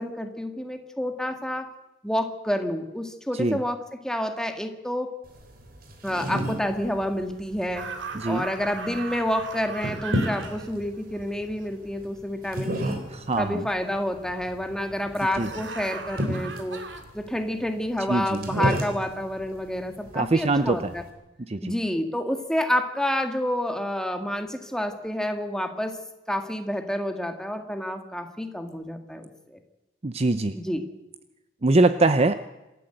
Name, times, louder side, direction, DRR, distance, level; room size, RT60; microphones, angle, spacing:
voice 1, 0.0-1.7 2.0-3.8 4.0-5.1 6.0-7.9 8.3-13.0 13.4-16.8 17.1-21.0 21.6-26.0 26.3-29.6 30.6-30.8, left 1 dB, 5° left, 6 dB, 1.9 m, -29 dB
sound 1, 5.2-21.1, equal, 50° right, 3.7 m, -34 dB
sound 2, 7.7-12.1 15.4-17.0, right 4 dB, 70° right, 2.4 m, -38 dB
voice 2, 13.1-13.7 15.4-15.5 18.1-18.5 20.1-20.9 21.5-21.7 30.0-30.6 31.6-32.4, right 2 dB, 35° right, 11 dB, 0.7 m, -23 dB
27.0 x 13.0 x 7.9 m, 1.0 s
head